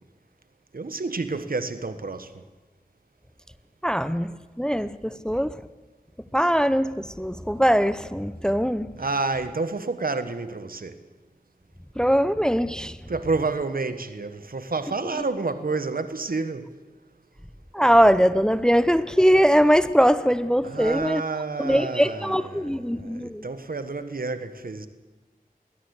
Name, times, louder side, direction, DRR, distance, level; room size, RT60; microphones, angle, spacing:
voice 1, 0.7-2.4 9.0-11.0 13.1-16.7 20.6-24.9, right 3 dB, 70° right, 1.5 m, -29 dB
voice 2, 3.8-5.6 6.3-9.0 12.0-13.0 17.7-21.2 21.6-23.5, equal, 5° left, 0.8 m, -21 dB
21.5 x 17.5 x 8.3 m
wide cardioid pair, 40°, 15 cm